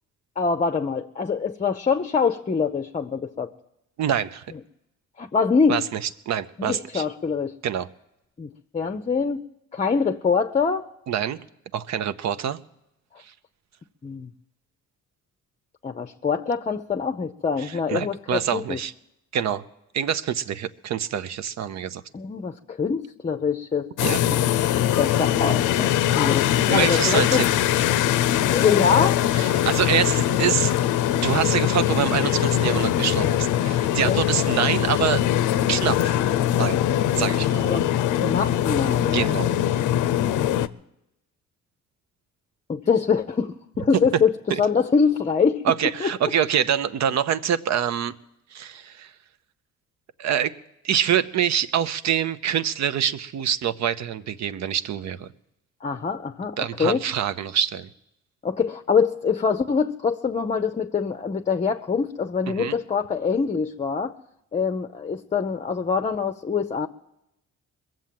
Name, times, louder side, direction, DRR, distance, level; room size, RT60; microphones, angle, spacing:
voice 1, 0.4-3.5 5.2-5.8 6.6-7.5 8.4-9.4 9.7-10.9 14.0-14.3 15.8-18.8 22.1-24.4 24.7-27.4 28.5-29.2 34.0-34.2 37.6-39.2 42.7-45.6 46.0-46.1 55.8-57.0 58.4-64.1 64.5-66.9, left 5 dB, 25° left, 8 dB, 0.6 m, -24 dB
voice 2, 4.0-4.4 5.7-6.0 6.3-7.0 7.6-7.9 11.1-11.4 11.7-12.6 17.6-18.9 19.3-19.7 19.9-22.0 24.0-24.2 26.7-27.5 29.3-30.7 31.1-35.2 35.7-36.2 36.6-36.8 37.2-37.7 39.1-39.5 44.5-44.6 45.6-48.1 48.5-49.1 50.2-50.5 50.8-55.3 56.6-57.9 62.6-62.8, right 9 dB, 65° right, 15 dB, 0.8 m, -25 dB
sound 1, 24.0-40.7, left 11 dB, 80° left, 0.6 m, -22 dB
21.5 x 7.6 x 7.6 m, 0.85 s
cardioid pair, 90°, 30 cm